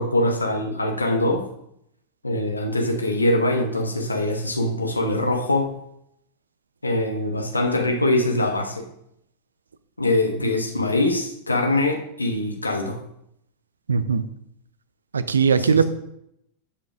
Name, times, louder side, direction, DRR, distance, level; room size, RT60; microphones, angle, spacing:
voice 1, 0.0-1.4 2.2-5.8 6.8-8.9 10.0-13.0 15.6-15.8, left 1 dB, 80° left, 4 dB, 0.9 m, -23 dB
voice 2, 13.9-14.2 15.1-15.8, right 6 dB, 70° right, 13 dB, 0.5 m, -19 dB
11.5 x 7.0 x 2.5 m, 0.76 s
figure-of-eight pair, 90°, 0 cm